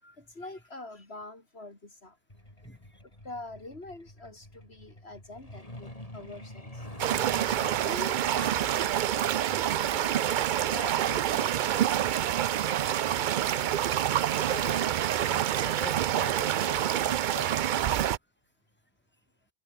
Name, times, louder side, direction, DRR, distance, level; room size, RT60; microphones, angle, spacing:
voice 1, 0.2-2.2 3.2-6.9 7.5-10.1 10.6-11.7 13.5-13.7, left 2 dB, 85° left, 4.6 m, -44 dB
Truck, 2.3-14.6 15.8-16.0 16.4-16.6 16.9-17.2 17.5-17.6 18.1-18.2, left 1 dB, 35° left, 6.4 m, -49 dB
voice 2, 2.6-3.0 13.4-13.5 14.5-18.1, equal, 10° left, 6.9 m, -44 dB
sound 1, 7.0-18.2, right 11 dB, 60° right, 0.6 m, -27 dB
omnidirectional pair, 1.0 m